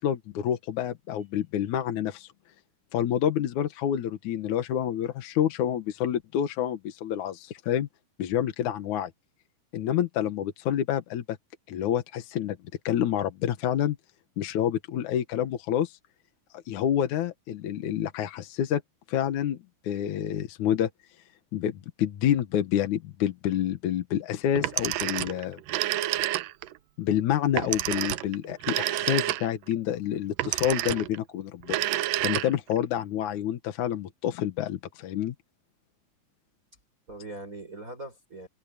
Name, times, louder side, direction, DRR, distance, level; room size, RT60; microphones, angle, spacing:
voice 1, 0.0-2.3 2.9-7.9 8.2-9.1 9.7-11.4 11.7-12.6 12.9-14.0 14.4-16.0 16.5-18.8 19.1-19.6 19.8-20.9 21.5-25.6 27.0-31.8 32.2-35.3, left 10 dB, 65° left, 2.4 m, -28 dB
Telephone, 24.6-26.8 27.6-29.7 30.4-31.2 31.6-32.8, right 15 dB, 75° right, 2.3 m, -29 dB
voice 2, 37.1-38.5, right 2 dB, 20° right, 6.3 m, -42 dB
omnidirectional pair, 4.2 m